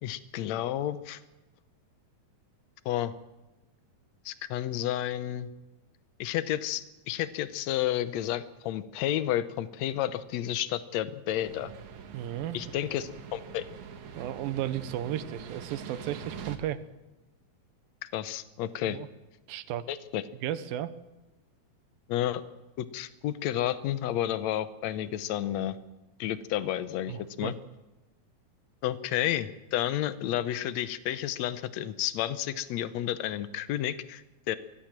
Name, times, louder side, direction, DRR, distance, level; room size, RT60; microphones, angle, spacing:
voice 1, 0.0-1.2 2.8-3.1 4.2-5.5 6.2-11.7 12.5-13.7 18.0-19.0 19.9-20.2 22.1-22.4 22.8-25.8 26.2-27.5 28.8-34.6, left 12 dB, 75° left, 14 dB, 1.7 m, -31 dB
sound 1, 11.4-16.6, right 7 dB, 60° right, 2.6 m, -44 dB
voice 2, 12.1-12.6 14.1-16.8 18.9-19.1 19.5-19.9 20.4-20.9 27.1-27.5, right 11 dB, 80° right, 12 dB, 2.7 m, -34 dB
23.5 x 17.0 x 7.4 m, 1.0 s
omnidirectional pair, 4.1 m